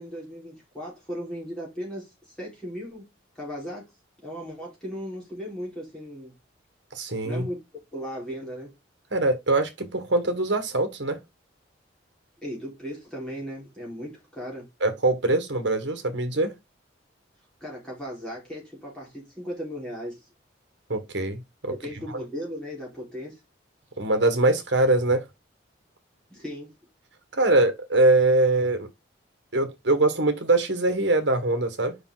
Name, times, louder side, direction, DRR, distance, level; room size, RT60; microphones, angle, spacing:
voice 1, 0.0-3.1 3.3-3.9 4.2-6.3 7.2-7.6 7.9-8.7 12.4-14.7 17.6-20.3 21.7-23.4 26.3-26.7, equal, 5° left, 4.7 m, -37 dB
voice 2, 6.9-7.4 9.1-11.2 14.8-16.5 20.9-21.7 24.0-25.2 27.3-28.9 29.5-32.0, right 2 dB, 65° right, 1.7 m, -23 dB
7.0 x 5.6 x 4.0 m
head